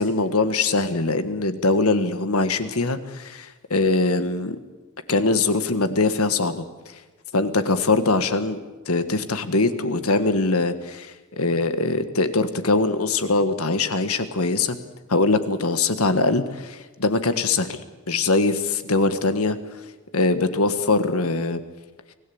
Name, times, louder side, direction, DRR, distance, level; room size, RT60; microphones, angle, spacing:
voice 1, 0.0-4.6 5.1-6.6 7.3-8.6 8.9-14.8 15.1-17.8 18.1-19.6 20.1-21.6, left 3 dB, 75° left, 10 dB, 1.7 m, -22 dB
24.5 x 16.5 x 8.7 m, 1.2 s
head